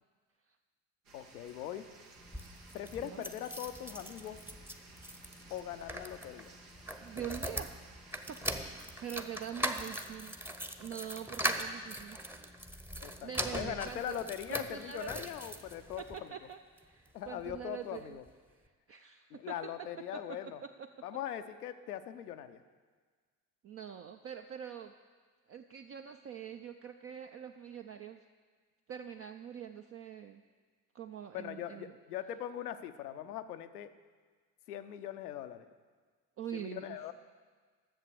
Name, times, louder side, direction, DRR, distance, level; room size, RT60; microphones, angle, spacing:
sound 1, 1.0-9.1, right 3 dB, 80° right, 1.3 m, -57 dB
voice 1, 1.1-1.9 2.7-4.4 5.5-6.5 13.0-16.3 17.1-18.2 19.3-20.6 21.0-22.6 31.3-33.9 34.7-35.7 36.5-37.1, left 10 dB, 75° left, 10 dB, 0.6 m, -41 dB
sound 2, 2.2-16.2 16.8-17.6 17.9-18.0 18.3-18.4, equal, 5° right, 0.8 m, -41 dB
voice 2, 7.0-7.8 8.3-8.5 9.0-10.4 10.8-12.2 12.9-15.5 16.1-18.2 18.9-19.6 20.1-20.9 23.6-24.9 25.5-28.2 28.9-30.4 30.9-31.9 36.4-37.0, right 8 dB, 30° right, 6 dB, 0.5 m, -44 dB
11.0 x 7.4 x 6.7 m, 1.5 s
figure-of-eight pair, 50°, 46 cm